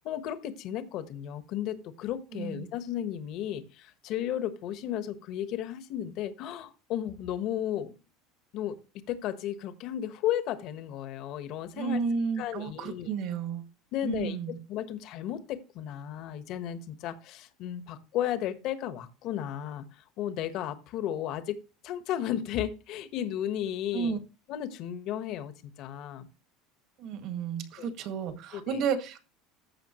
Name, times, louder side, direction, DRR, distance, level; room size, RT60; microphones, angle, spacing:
voice 1, 0.0-7.9 8.5-8.8 9.1-12.0 12.4-13.1 13.9-14.4 14.7-19.8 20.2-24.2 24.5-26.3 27.8-27.9 28.5-28.8, left 11 dB, 55° left, 1.2 m, -34 dB
voice 2, 2.3-2.7 11.7-13.7 14.0-14.6 23.9-24.2 27.0-29.2, right 6 dB, 55° right, 1.8 m, -32 dB
14.5 x 5.7 x 3.0 m
supercardioid pair, 130°, 0 cm